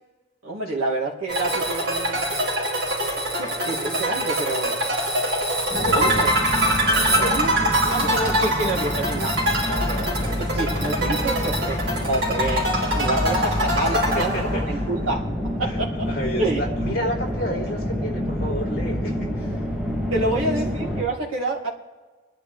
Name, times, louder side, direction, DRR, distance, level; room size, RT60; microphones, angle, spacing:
voice 1, 0.4-2.4 3.3-4.8 5.9-6.4 7.2-7.5 7.9-9.3 10.5-11.8 12.1-15.3 15.6-16.1 16.4-16.6 20.1-21.7, right 2 dB, 85° right, -3 dB, 2.5 m, -27 dB
sound 1, 1.3-10.3 10.7-11.6, right 2 dB, 35° right, 6.1 m, -31 dB
sound 2, 1.3-14.9, equal, 60° right, 6.0 m, -24 dB
sound 3, 5.7-21.0, equal, 5° right, 2.3 m, -28 dB
voice 2, 5.8-6.3 6.9-8.8 9.7-10.6 14.1-14.9 15.6-19.6 20.3-20.5, equal, 45° left, -2 dB, 3.4 m, -32 dB
26.0 x 11.5 x 3.4 m, 1.3 s
head